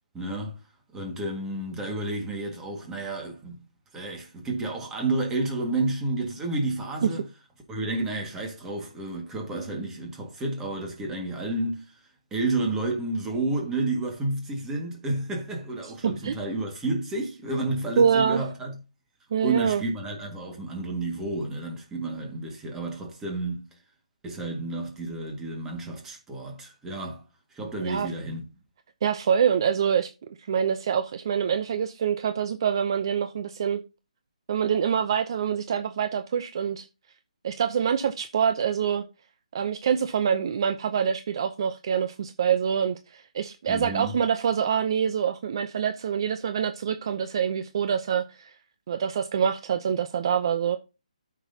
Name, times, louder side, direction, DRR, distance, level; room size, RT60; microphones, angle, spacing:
voice 1, 0.1-0.6 0.9-3.6 3.9-7.2 7.7-12.0 12.3-18.8 19.4-23.7 24.2-27.2 27.5-28.4 43.7-44.1, right 2 dB, 10° right, 1.8 m, -30 dB
voice 2, 16.0-16.4 18.0-18.4 19.3-19.8 27.8-28.1 29.0-33.8 34.5-36.9 37.4-39.0 39.5-48.5 48.9-50.8, right 7 dB, 40° right, 0.6 m, -25 dB
12.5 x 6.1 x 2.8 m
hypercardioid pair, 165°, 4 cm